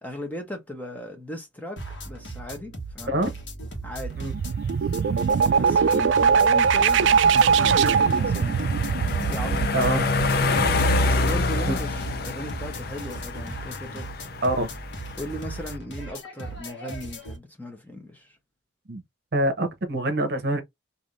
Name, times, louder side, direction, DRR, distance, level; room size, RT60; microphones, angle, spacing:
voice 1, 0.0-3.2 3.8-4.2 5.5-8.9 9.2-10.0 10.3-14.1 15.1-18.4, left 1 dB, 10° left, 0.8 m, -37 dB
sound 1, 1.8-17.4, right 1 dB, 65° left, 1.2 m, -38 dB
sound 2, 3.9-11.6, right 6 dB, 70° right, 0.3 m, -22 dB
sound 3, 4.0-15.8, left 3 dB, 50° left, 0.5 m, -28 dB
voice 2, 9.7-10.0 11.7-11.8 14.4-14.7 18.9-19.0 19.3-20.6, right 1 dB, 55° right, 0.8 m, -25 dB
3.3 x 2.6 x 2.5 m
head